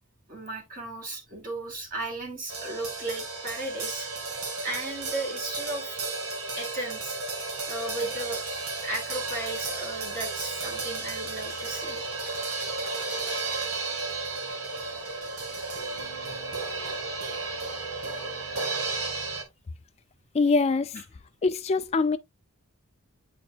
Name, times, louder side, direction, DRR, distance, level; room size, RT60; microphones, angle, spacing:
voice 1, 0.3-4.1 4.6-6.0 6.6-7.2 7.7-8.4 8.8-12.0, right 2 dB, 40° right, 2.6 m, -35 dB
sound 1, 2.5-19.4, right 3 dB, 90° right, 2.0 m, -33 dB
voice 2, 20.3-21.0 21.4-22.2, left 4 dB, 30° left, 0.3 m, -24 dB
8.8 x 4.4 x 2.4 m
head